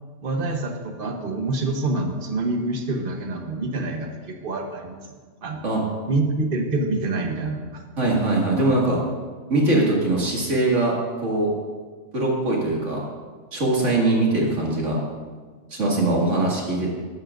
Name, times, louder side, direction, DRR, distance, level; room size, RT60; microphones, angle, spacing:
voice 1, 0.2-5.0 5.4-5.6 6.1-7.8, right 2 dB, 45° right, 3 dB, 1.2 m, -26 dB
voice 2, 8.0-9.0 9.5-11.5 12.1-13.0 13.5-15.0 15.7-16.9, right 2 dB, 75° right, -3 dB, 2.4 m, -21 dB
14.0 x 12.0 x 2.5 m, 1.5 s
omnidirectional pair, 1.3 m